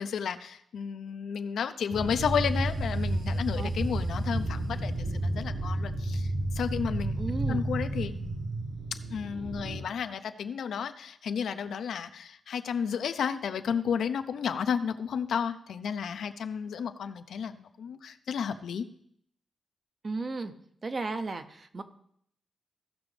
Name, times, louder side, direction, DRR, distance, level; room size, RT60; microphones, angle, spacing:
voice 1, 0.0-7.1 7.5-8.2 8.9-18.9, left 7 dB, 75° left, 10 dB, 0.6 m, -32 dB
sound 1, 1.9-9.8, right 1 dB, 65° right, 4.6 m, -31 dB
voice 2, 7.2-7.7 20.0-20.5 20.8-21.8, right 3 dB, 30° right, 9 dB, 0.6 m, -34 dB
15.5 x 6.0 x 3.3 m, 0.68 s
wide cardioid pair, 165°, 0 cm